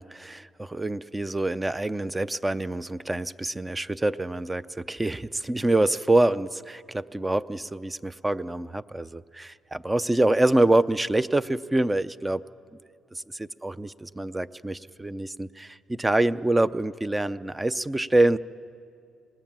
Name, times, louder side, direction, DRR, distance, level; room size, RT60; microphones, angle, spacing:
voice 1, 0.0-12.4 13.1-18.4, right 2 dB, 15° right, 15 dB, 0.5 m, -26 dB
26.5 x 19.0 x 7.4 m, 2.4 s
cardioid pair, 90°, 0 cm